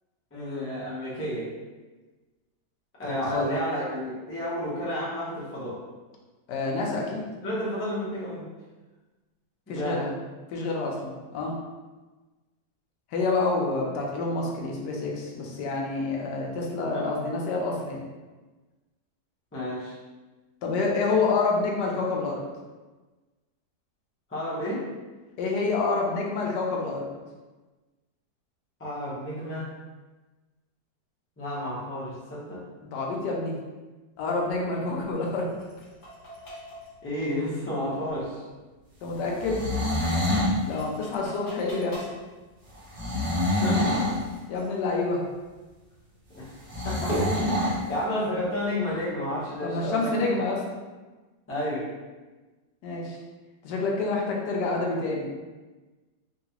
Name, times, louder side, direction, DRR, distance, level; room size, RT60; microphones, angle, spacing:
voice 1, 0.3-1.5 3.0-5.8 7.4-8.5 9.7-10.1 16.8-17.1 19.5-20.0 24.3-24.9 28.8-29.7 31.4-32.6 37.0-38.4 43.4-44.0 46.3-46.5 46.8-47.4 47.9-50.1 51.5-51.9, equal, 15° left, -8 dB, 0.4 m, -31 dB
voice 2, 3.0-3.4 6.5-7.2 9.7-10.1 10.5-11.6 13.1-18.0 20.6-22.4 25.4-27.1 32.9-33.6 34.2-35.5 39.0-39.6 40.7-42.1 44.5-45.2 49.6-50.6 52.8-53.2 53.6-55.4, left 3 dB, 80° left, -1 dB, 1.2 m, -28 dB
sound 1, 34.1-49.9, right 1 dB, 40° left, 1.0 m, -43 dB
sound 2, 39.3-40.6 42.9-44.2 46.7-47.8, left 1 dB, 40° right, 0.8 m, -26 dB
3.8 x 2.3 x 2.8 m, 1.2 s
omnidirectional pair, 1.8 m